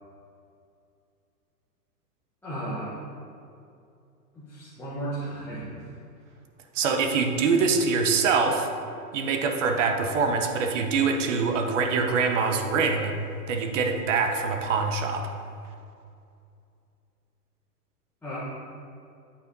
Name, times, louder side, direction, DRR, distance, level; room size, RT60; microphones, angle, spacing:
voice 1, 2.4-3.0 4.4-5.8 18.2-18.4, right 1 dB, 5° left, -12 dB, 0.7 m, -34 dB
voice 2, 6.7-8.7 9.1-13.2 13.5-15.3, right 4 dB, 50° right, 4 dB, 0.7 m, -24 dB
8.4 x 4.9 x 2.6 m, 2.5 s
hypercardioid pair, 130°, 49 cm